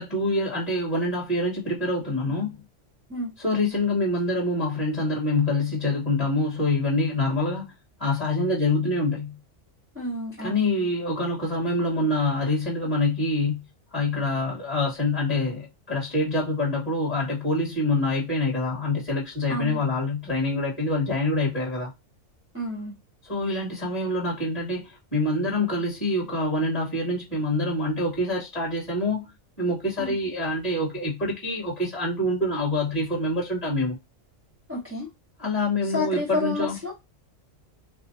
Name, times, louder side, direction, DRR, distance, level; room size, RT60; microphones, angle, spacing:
voice 1, 0.0-2.6 3.4-7.7 8.0-9.4 10.4-13.6 13.9-21.9 23.2-29.3 29.6-34.0 35.4-36.8, left 2 dB, 30° left, 2.4 m, -26 dB
voice 2, 9.9-10.6 19.5-19.8 22.5-22.9 30.0-30.2 34.7-35.1 35.8-36.9, left 2 dB, 15° right, 0.6 m, -30 dB
5.9 x 2.0 x 2.6 m
omnidirectional pair, 1.3 m